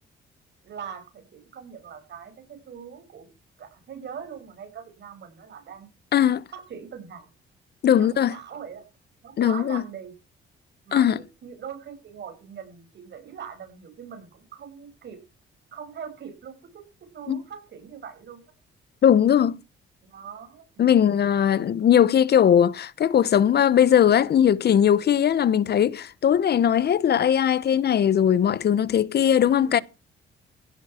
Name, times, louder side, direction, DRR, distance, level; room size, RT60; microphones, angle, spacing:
voice 1, 0.6-3.3 3.6-5.9 6.5-7.3 7.9-8.9 9.2-10.1 10.9-15.2 15.7-16.8 17.1-18.4 20.1-21.1 29.4-29.8, right 7 dB, 60° right, 5.6 m, -41 dB
voice 2, 6.1-6.4 7.8-8.3 9.4-9.8 10.9-11.2 17.3-17.4 19.0-19.6 20.8-29.8, left 9 dB, 55° left, 0.9 m, -19 dB
16.0 x 11.0 x 4.4 m
cardioid pair, 90°, 20 cm